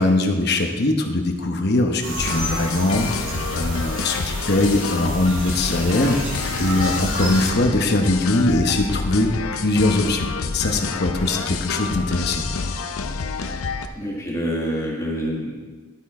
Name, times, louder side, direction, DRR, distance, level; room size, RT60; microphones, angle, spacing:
voice 1, 0.0-9.3 9.6-12.5, left 2 dB, 50° left, 4 dB, 1.0 m, -21 dB
sound 1, 2.0-7.5, right 1 dB, 70° right, 2.3 m, -32 dB
sound 2, 2.2-13.9, left 4 dB, 85° left, 0.6 m, -28 dB
voice 2, 14.0-15.5, equal, 15° left, -4 dB, 1.7 m, -26 dB
12.0 x 6.1 x 4.3 m, 1.4 s
head